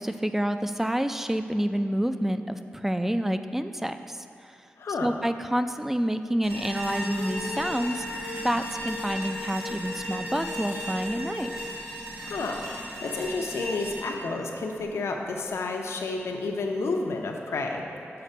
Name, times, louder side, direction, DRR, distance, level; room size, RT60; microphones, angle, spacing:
voice 1, 0.0-4.0 5.0-8.0 8.4-11.5, equal, 5° right, 9 dB, 0.3 m, -28 dB
voice 2, 4.8-5.1 12.2-12.6 13.0-17.8, left 3 dB, 85° left, 2 dB, 0.6 m, -30 dB
sound 1, 6.4-15.5, equal, 90° right, 1.8 m, -37 dB
sound 2, 6.9-11.7, left 3 dB, 40° left, 0.7 m, -39 dB
6.8 x 4.9 x 5.4 m, 2.5 s
wide cardioid pair, 85°, 4 cm